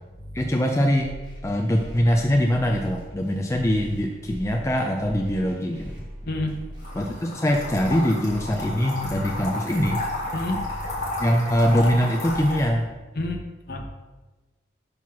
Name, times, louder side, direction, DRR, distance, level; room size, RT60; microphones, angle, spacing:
voice 1, 0.3-1.1 1.4-5.9 7.0-10.0 11.2-12.9, equal, 15° left, 1 dB, 0.4 m, -23 dB
sound 1, 1.0-13.0, equal, 25° right, 1.4 m, -40 dB
voice 2, 6.2-6.6 10.3-11.0 13.1-13.8, left 1 dB, 55° left, 3 dB, 0.9 m, -30 dB
sound 2, 6.8-12.6, left 2 dB, 40° left, 2.1 m, -32 dB
5.5 x 4.6 x 6.0 m, 1.2 s
head